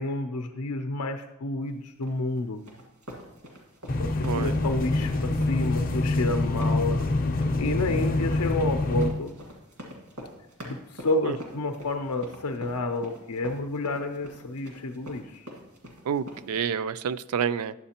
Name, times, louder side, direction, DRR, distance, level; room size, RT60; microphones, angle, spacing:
voice 1, 0.0-2.6 4.0-7.0 7.3-9.3 10.6-15.5, left 2 dB, 85° left, 5 dB, 0.5 m, -30 dB
sound 1, 2.0-16.6, equal, 90° right, 1.9 m, -45 dB
sound 2, 3.9-9.1, left 2 dB, 40° left, 0.5 m, -26 dB
voice 2, 16.1-17.7, right 7 dB, 70° right, 15 dB, 0.3 m, -28 dB
11.0 x 7.8 x 2.9 m, 0.91 s
head